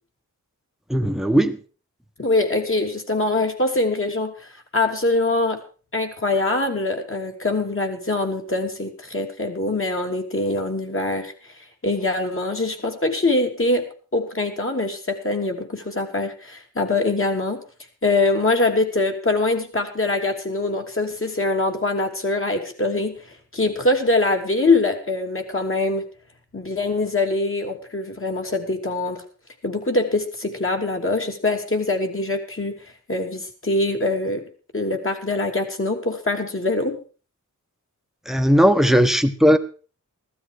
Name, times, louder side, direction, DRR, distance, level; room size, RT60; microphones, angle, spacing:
voice 1, 0.9-1.6 38.3-39.6, equal, ahead, 10 dB, 1.2 m, -17 dB
voice 2, 2.2-5.6 5.9-11.5 11.8-13.8 14.1-17.6 18.0-23.2 23.5-26.1 26.5-29.2 29.6-32.8 33.1-34.4 34.7-37.0, left 2 dB, 40° left, 3 dB, 3.0 m, -23 dB
15.5 x 12.5 x 4.8 m, 0.38 s
wide cardioid pair, 75°, 32 cm